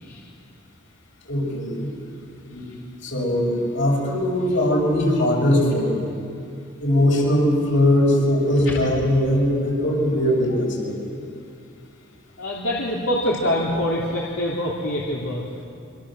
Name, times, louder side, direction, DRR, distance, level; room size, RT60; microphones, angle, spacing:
voice 1, 1.3-1.9 2.5-2.6 3.0-6.1 6.8-11.0, left 1 dB, 65° left, -1 dB, 7.1 m, -20 dB
voice 2, 12.4-15.4, left 1 dB, 85° left, -4 dB, 3.2 m, -25 dB
26.0 x 25.5 x 7.8 m, 2.4 s
head